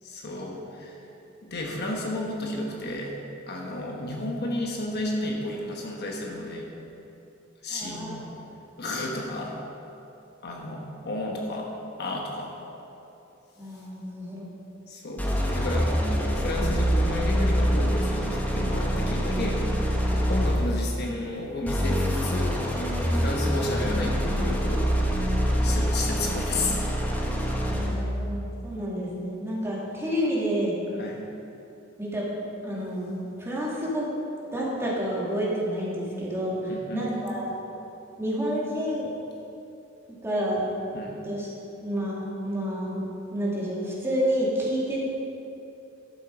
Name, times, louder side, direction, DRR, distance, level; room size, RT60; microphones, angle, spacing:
voice 1, 0.0-1.0 1.4-3.2 3.5-6.7 7.6-8.3 8.8-9.6 10.4-12.5 14.9-16.0 16.3-19.6 20.3-22.6 23.1-24.9 25.6-26.8 27.4-27.6 31.0-31.2 36.7-37.1 40.9-41.2, left 1 dB, 55° left, 0 dB, 1.2 m, -32 dB
voice 2, 7.7-8.1 13.6-14.5 27.7-30.8 32.0-32.3 32.6-34.1 34.5-37.5 38.2-39.1 40.2-40.7 41.2-41.5 41.8-43.1 43.3-45.1, equal, 15° right, -6 dB, 2.2 m, -29 dB
sound 1, 15.2-20.8 21.6-28.1, equal, 10° left, 1.1 m, -25 dB
11.5 x 7.3 x 5.0 m, 2.8 s
head